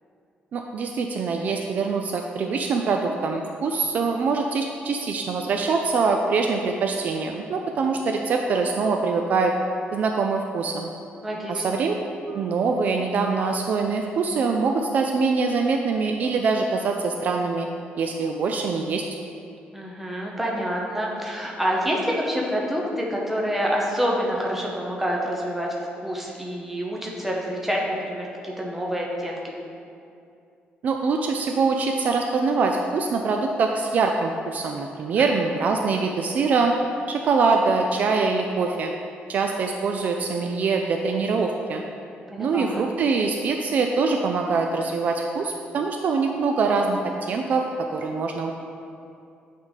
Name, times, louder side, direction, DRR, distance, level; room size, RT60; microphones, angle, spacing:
voice 1, 0.5-9.5 9.9-10.9 11.5-11.9 12.3-17.7 18.0-19.0 30.8-36.7 37.1-38.9 39.3-41.8 42.4-47.7 47.9-48.5, right 4 dB, 45° right, 3 dB, 0.3 m, -24 dB
voice 2, 11.2-11.8 19.7-25.7 26.0-29.6 35.2-35.4 42.3-42.8, equal, 5° right, -2 dB, 0.8 m, -27 dB
8.6 x 3.7 x 4.0 m, 2.6 s
cardioid pair, 170°, 4 cm